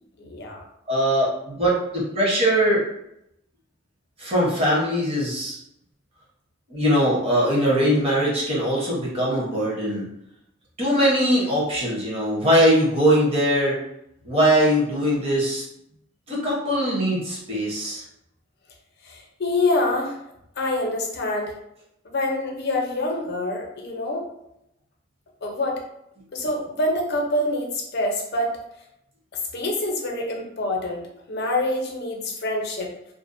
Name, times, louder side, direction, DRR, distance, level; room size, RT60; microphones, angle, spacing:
voice 1, 0.2-0.6 19.0-20.2 20.6-21.6 22.0-24.3 25.4-25.8 26.3-28.6 29.5-32.9, left 2 dB, 60° left, 0 dB, 0.6 m, -26 dB
voice 2, 0.9-2.8 4.2-5.6 6.7-10.0 10.8-13.8 14.2-15.6 16.3-18.0, equal, 30° right, -5 dB, 0.9 m, -21 dB
2.6 x 2.1 x 2.5 m, 0.79 s
head